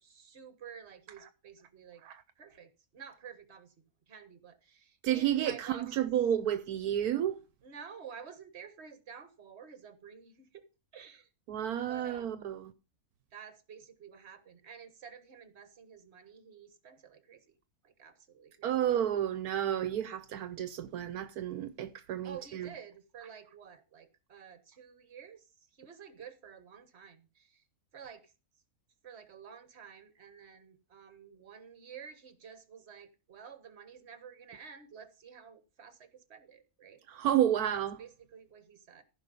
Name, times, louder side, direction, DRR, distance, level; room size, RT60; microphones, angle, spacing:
voice 1, 0.0-2.0 2.4-6.1 7.6-10.7 10.9-11.3 11.9-12.4 13.3-17.5 17.8-18.7 22.2-27.7 27.9-28.3 29.0-37.3 37.7-39.0, right 7 dB, 45° right, 1.6 m, -51 dB
voice 2, 5.0-7.4 11.5-12.7 18.6-22.7 37.1-38.0, right 10 dB, 80° right, 1.2 m, -31 dB
14.5 x 5.5 x 5.3 m
omnidirectional pair, 1.6 m